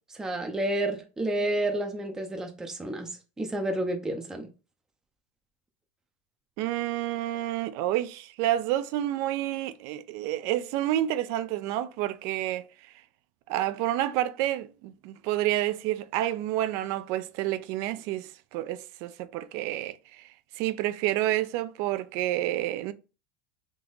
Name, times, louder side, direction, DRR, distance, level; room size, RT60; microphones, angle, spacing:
voice 1, 0.1-3.1 3.4-4.5, right 1 dB, 10° right, 0.6 m, -30 dB
voice 2, 6.6-12.7 13.5-20.3 20.6-22.9, right 14 dB, 55° right, 0.5 m, -29 dB
3.6 x 2.8 x 3.9 m
supercardioid pair, 130°, 6 cm